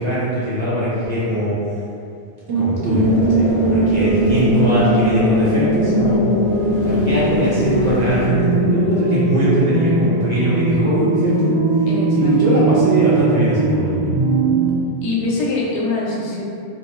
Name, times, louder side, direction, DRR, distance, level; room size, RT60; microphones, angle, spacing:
voice 1, 0.0-1.5 2.5-6.3 6.8-11.5 12.1-14.2, right 1 dB, 45° right, -10 dB, 0.7 m, -20 dB
sound 1, 2.5-14.7, right 2 dB, 85° right, 0.9 m, -19 dB
sound 2, 3.0-8.3, left 1 dB, 35° left, 0.5 m, -26 dB
voice 2, 11.9-12.6 15.0-16.4, left 3 dB, 90° left, -4 dB, 0.9 m, -23 dB
2.4 x 2.1 x 2.9 m, 2.4 s
omnidirectional pair, 1.1 m